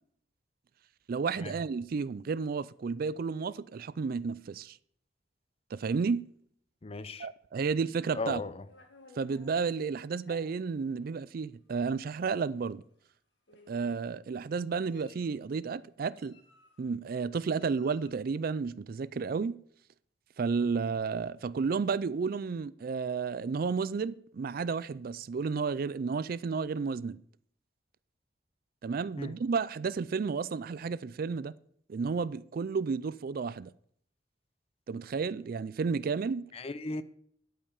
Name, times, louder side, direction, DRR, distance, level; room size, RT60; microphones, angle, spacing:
voice 1, 1.1-4.8 5.7-6.2 7.2-8.4 9.2-12.8 13.7-16.4 16.8-19.6 20.4-27.2 28.8-31.5 31.9-33.7 34.9-36.5, right 5 dB, 50° right, 0.4 m, -32 dB
voice 2, 6.8-7.3 8.1-8.6 29.2-29.3 36.5-37.0, left 3 dB, 30° left, 0.6 m, -36 dB
Meow, 7.9-9.6 10.2-10.4 11.3-11.4 11.8-12.0 13.0-13.1 13.5-14.0 14.6-15.3 16.1-16.9 17.5-18.2, left 2 dB, 80° left, 2.1 m, -58 dB
12.0 x 5.6 x 7.0 m
head